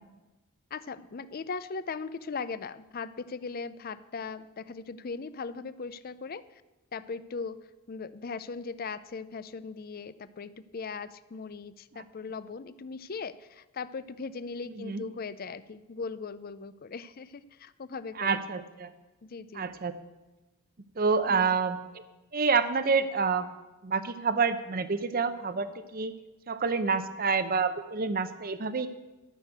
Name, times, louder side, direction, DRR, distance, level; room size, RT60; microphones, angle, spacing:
voice 1, 0.7-6.6 6.9-18.3 19.2-19.7 21.3-21.6, left 4 dB, 45° left, 15 dB, 0.5 m, -39 dB
voice 2, 18.2-18.9 19.5-19.9 21.0-21.8 22.3-23.5 23.8-26.1 26.5-28.9, right 5 dB, 40° right, 12 dB, 0.7 m, -27 dB
13.0 x 6.6 x 7.9 m, 1.1 s
head